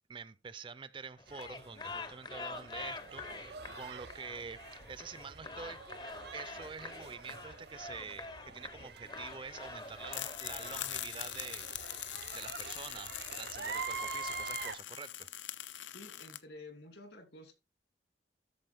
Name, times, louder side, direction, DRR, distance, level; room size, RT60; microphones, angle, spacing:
voice 1, 0.1-5.9 6.3-11.7 12.0-15.3, right 5 dB, 25° right, 0.4 m, -47 dB
sound 1, 1.2-11.1, left 3 dB, 25° left, 0.6 m, -46 dB
sound 2, 1.3-14.8, right 5 dB, 60° right, 0.7 m, -46 dB
sound 3, 10.1-16.4, left 13 dB, 90° left, 0.7 m, -42 dB
voice 2, 15.9-17.5, left 2 dB, 70° left, 2.8 m, -51 dB
13.5 x 4.9 x 3.4 m
head